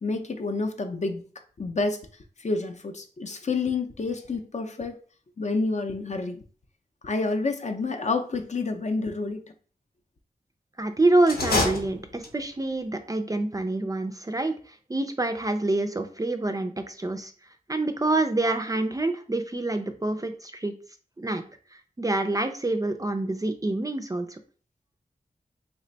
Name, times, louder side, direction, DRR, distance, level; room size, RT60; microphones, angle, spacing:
voice 1, 0.0-1.2 1.6-2.0 2.4-5.0 5.4-6.4 7.0-9.4, left 3 dB, 45° left, 6 dB, 0.6 m, -28 dB
voice 2, 10.8-17.3 17.7-20.7 21.2-21.4 22.0-24.4, right 2 dB, 20° right, 7 dB, 0.4 m, -26 dB
sound 1, 11.2-12.6, left 2 dB, 75° left, 0.8 m, -27 dB
3.3 x 2.1 x 3.9 m, 0.41 s
wide cardioid pair, 60°, 16 cm